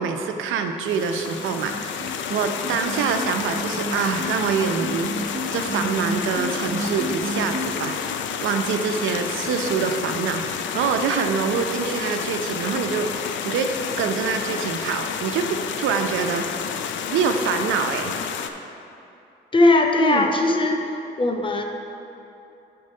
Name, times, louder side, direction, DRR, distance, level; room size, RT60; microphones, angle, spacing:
voice 1, 0.0-8.0 8.4-13.1 13.4-16.6 17.1-18.1 20.0-20.3, right 6 dB, 80° right, 6 dB, 0.6 m, -25 dB
sound 1, 0.9-18.5, left 7 dB, 70° left, 0.5 m, -30 dB
sound 2, 1.6-7.7, right 1 dB, 50° right, 0.9 m, -31 dB
voice 2, 19.5-21.6, left 2 dB, 25° left, 3 dB, 0.8 m, -19 dB
8.6 x 4.6 x 5.4 m, 2.8 s
cardioid pair, 90°, 20 cm